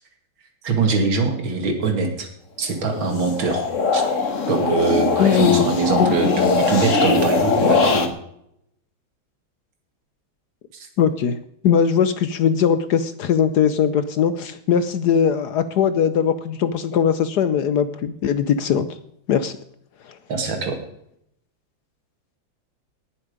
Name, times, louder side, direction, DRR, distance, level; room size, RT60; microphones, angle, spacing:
voice 1, 0.6-2.3 2.6-3.7 3.9-4.0 4.5-8.1 10.7-10.9 20.3-20.8, right 4 dB, 75° right, 4 dB, 2.9 m, -23 dB
sound 1, 2.8-8.1, left 4 dB, 40° left, 1.5 m, -21 dB
voice 2, 5.2-5.7 6.0-6.5 11.0-11.3 11.6-18.9 19.3-19.6 20.0-20.2, left 7 dB, 65° left, 12 dB, 1.1 m, -20 dB
19.5 x 7.3 x 5.1 m, 0.73 s
omnidirectional pair, 2.2 m